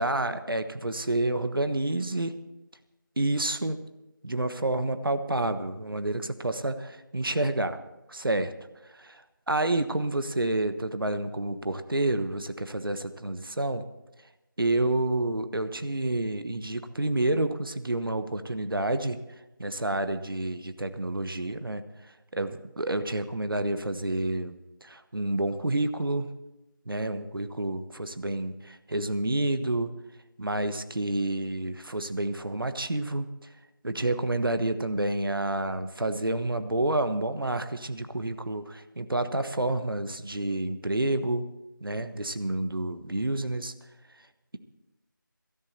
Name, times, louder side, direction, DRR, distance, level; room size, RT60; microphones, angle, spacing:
voice 1, 0.0-2.3 3.2-3.8 4.2-7.8 8.1-8.5 8.8-13.8 14.6-19.2 19.6-26.3 26.9-29.9 30.4-33.3 33.8-41.5 41.8-43.7, right 2 dB, 85° right, 10 dB, 1.2 m, -29 dB
17.5 x 13.0 x 4.3 m, 1.0 s
figure-of-eight pair, 170°, 11 cm